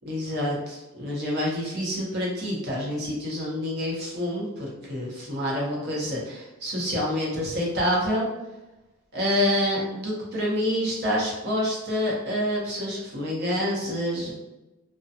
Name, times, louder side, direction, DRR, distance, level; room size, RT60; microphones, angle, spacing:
voice 1, 0.0-8.3 9.1-14.3, left 1 dB, 50° right, -4 dB, 0.9 m, -27 dB
2.4 x 2.2 x 2.6 m, 1.0 s
head